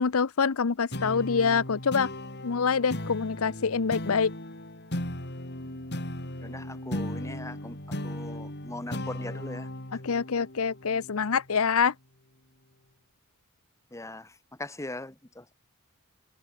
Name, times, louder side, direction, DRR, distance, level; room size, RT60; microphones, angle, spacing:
voice 1, 0.0-2.1 2.4-4.3 10.0-11.9, left 5 dB, 70° left, 0.7 m, -25 dB
sound 1, 0.9-11.7, left 1 dB, 50° left, 5.0 m, -37 dB
voice 2, 6.4-7.8 8.0-9.7 13.9-15.5, left 2 dB, 15° left, 1.1 m, -40 dB
head